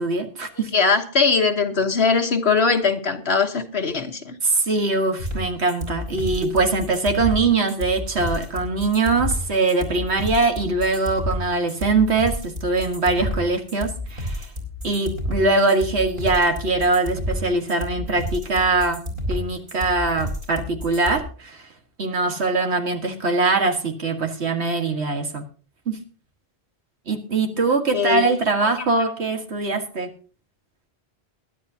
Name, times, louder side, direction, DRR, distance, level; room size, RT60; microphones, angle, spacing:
voice 1, 0.0-0.7 4.4-14.5 14.8-19.0 19.3-21.6 22.0-25.4 25.9-26.0 27.1-30.1, right 3 dB, 90° right, 2.1 m, -22 dB
voice 2, 0.7-4.4 27.9-28.3 28.6-28.7, left 4 dB, 75° left, 1.6 m, -21 dB
sound 1, 5.2-21.2, left 1 dB, 50° right, 4.4 m, -30 dB
21.5 x 10.5 x 2.8 m
omnidirectional pair, 1.1 m